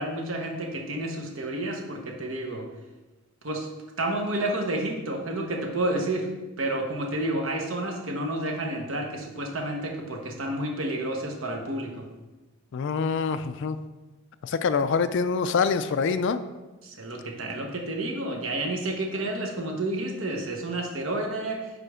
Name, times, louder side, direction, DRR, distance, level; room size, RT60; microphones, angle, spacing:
voice 1, 0.0-2.7 3.4-3.7 4.0-6.3 6.6-12.1 16.8-21.7, right 1 dB, 65° right, 2 dB, 1.0 m, -30 dB
voice 2, 12.7-13.8 14.4-16.4, left 5 dB, 55° left, 12 dB, 0.3 m, -25 dB
5.2 x 5.0 x 4.8 m, 1.2 s
head